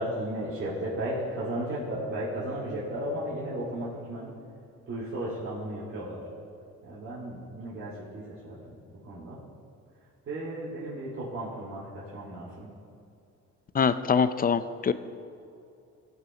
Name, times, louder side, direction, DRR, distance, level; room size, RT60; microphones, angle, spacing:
voice 1, 0.0-4.3 4.9-6.2 6.8-9.4 10.3-12.7, right 1 dB, 45° right, -10 dB, 3.0 m, -34 dB
voice 2, 13.7-14.9, left 6 dB, 30° left, 13 dB, 0.5 m, -24 dB
16.0 x 5.4 x 5.3 m, 2.6 s
cardioid pair, 90°, 30 cm